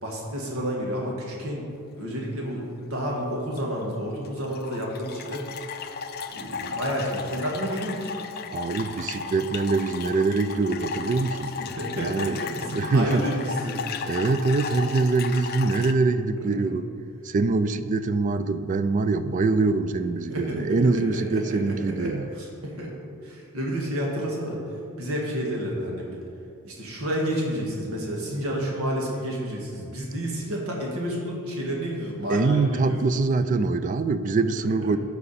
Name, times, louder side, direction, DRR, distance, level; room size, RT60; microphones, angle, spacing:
voice 1, 0.0-1.7 2.0-5.5 6.3-8.1 11.6-13.8 16.3-16.8 20.3-22.9 23.2-24.6 25.0-26.2 26.6-33.0 34.8-34.9, equal, 80° right, -2 dB, 1.7 m, -30 dB
sound 1, 3.6-3.8 4.2-15.9, left 5 dB, 45° left, 0.4 m, -35 dB
voice 2, 8.5-11.6 12.0-12.4 12.7-13.2 14.0-16.9 17.2-22.3 32.3-35.0, right 3 dB, 35° right, 11 dB, 0.3 m, -24 dB
13.5 x 4.9 x 4.2 m, 2.5 s
head